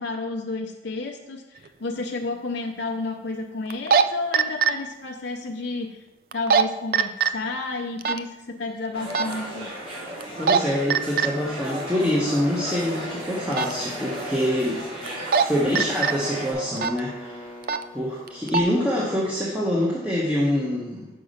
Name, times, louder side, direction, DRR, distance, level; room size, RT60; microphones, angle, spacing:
voice 1, 0.0-6.0 6.3-9.7, left 3 dB, 90° left, 1 dB, 0.6 m, -31 dB
sound 1, 1.7-1.8 3.7-4.0 4.3-4.7 6.3-6.6 6.9-7.3 8.0-8.2 9.1-9.3 10.2-10.6 10.9-11.3 13.5-13.7 15.1-15.4 15.8-16.1 16.8-17.0 17.6-17.8 18.3-18.6, right 6 dB, 55° right, 0.3 m, -20 dB
sound 2, 8.9-16.5, equal, 35° right, 3.1 m, -35 dB
voice 2, 10.4-14.8 15.3-17.5 17.9-21.1, equal, 5° right, -6 dB, 1.0 m, -25 dB
sound 3, 11.7-19.5, equal, 10° left, 1.3 m, -44 dB
5.7 x 5.2 x 6.5 m, 0.99 s
head